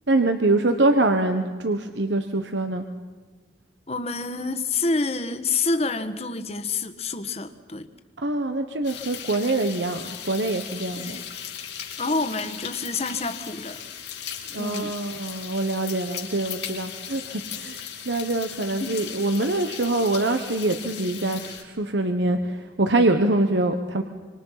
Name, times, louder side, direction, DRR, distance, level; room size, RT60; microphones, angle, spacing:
voice 1, 0.1-2.8 8.2-11.2 14.5-24.0, right 2 dB, 85° right, 7 dB, 1.3 m, -24 dB
voice 2, 3.9-7.9 10.9-11.2 12.0-13.8 14.5-15.0 18.8-19.0, left 3 dB, 35° left, 9 dB, 1.4 m, -28 dB
sound 1, 8.8-21.6, left 9 dB, 85° left, 6.0 m, -37 dB
26.0 x 26.0 x 5.8 m, 1.5 s
head